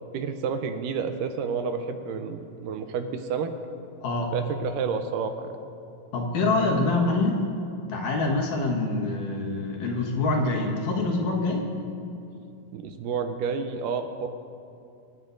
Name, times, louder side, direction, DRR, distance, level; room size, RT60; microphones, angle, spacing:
voice 1, 0.1-3.5 4.3-5.5 12.7-14.3, right 6 dB, 80° right, 7 dB, 2.2 m, -30 dB
voice 2, 4.0-4.3 6.1-7.4 7.9-11.7, left 2 dB, 70° left, -1 dB, 2.9 m, -25 dB
24.5 x 11.0 x 2.6 m, 2.6 s
omnidirectional pair, 4.0 m